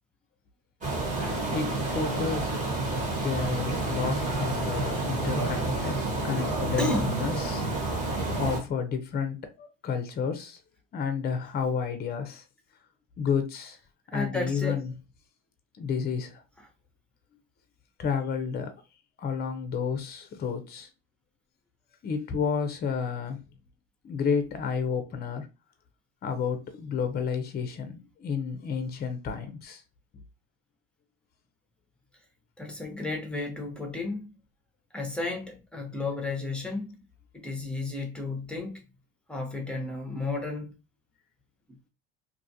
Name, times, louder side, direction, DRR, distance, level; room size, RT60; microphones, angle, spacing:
sound 1, 0.8-8.6, right 2 dB, 25° right, 1.4 m, -29 dB
voice 1, 1.5-2.5 3.2-6.0 6.2-7.7 8.4-10.6 10.9-12.4 13.2-13.8 14.1-14.9 15.8-16.4 18.0-18.7 19.2-20.9 22.0-23.4 24.0-25.5 26.2-27.9 28.2-29.8, left 6 dB, 35° left, 0.6 m, -31 dB
voice 2, 6.8-7.2 8.0-8.1 14.1-14.8 32.6-34.3 34.9-36.9 37.3-38.8 39.3-40.7, left 2 dB, 5° left, 0.9 m, -33 dB
2.6 x 2.4 x 2.7 m
supercardioid pair, 105°, 29 cm